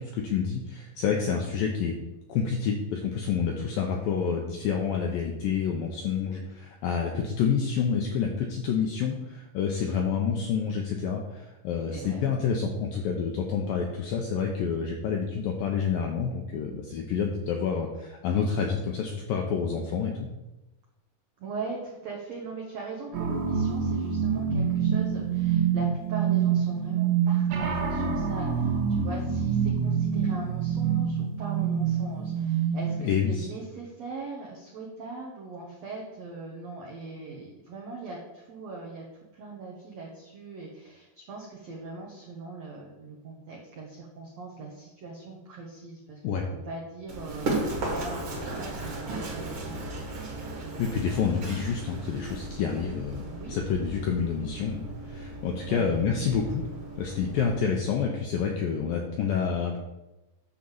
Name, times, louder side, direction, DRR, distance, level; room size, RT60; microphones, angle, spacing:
voice 1, 0.0-2.0 2.3-20.3 33.0-33.5 46.2-46.4 50.8-56.6 57.0-59.8, left 6 dB, 80° left, 1 dB, 2.0 m, -28 dB
voice 2, 21.4-39.0 39.3-46.2 46.6-50.0 53.2-53.7 55.7-55.8, right 3 dB, 85° right, -2 dB, 1.5 m, -40 dB
sound 1, 23.1-33.1, right 7 dB, 65° right, 2.3 m, -26 dB
Run, 47.1-57.6, right 2 dB, 45° right, 1.9 m, -36 dB
10.0 x 3.8 x 7.1 m, 1.0 s
omnidirectional pair, 5.1 m